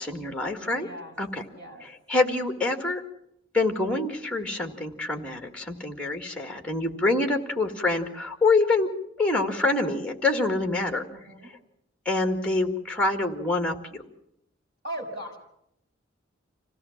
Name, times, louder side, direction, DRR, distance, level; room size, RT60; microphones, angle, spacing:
voice 1, 0.0-0.9 1.2-1.4 2.1-3.0 3.5-8.9 9.2-11.0 12.1-14.0, left 2 dB, 5° left, 5 dB, 2.0 m, -26 dB
voice 2, 0.7-1.1 1.5-1.9 6.8-7.2 11.1-11.5 14.8-15.4, right 1 dB, 55° right, 2 dB, 6.4 m, -39 dB
26.0 x 16.5 x 7.3 m, 0.76 s
head